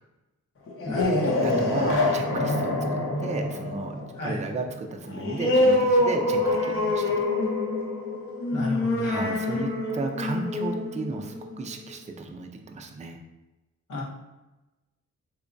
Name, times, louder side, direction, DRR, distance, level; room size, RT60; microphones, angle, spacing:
sound 1, 0.7-11.9, left 2 dB, 45° left, 0.7 m, -26 dB
voice 1, 0.8-1.4 4.2-4.4 8.5-9.2 13.9-14.0, left 1 dB, 85° left, -5 dB, 1.1 m, -33 dB
voice 2, 1.4-2.8 3.2-7.2 9.0-13.2, right 3 dB, 25° right, 4 dB, 0.4 m, -34 dB
3.3 x 3.0 x 2.6 m, 1.1 s
wide cardioid pair, 105°, 30 cm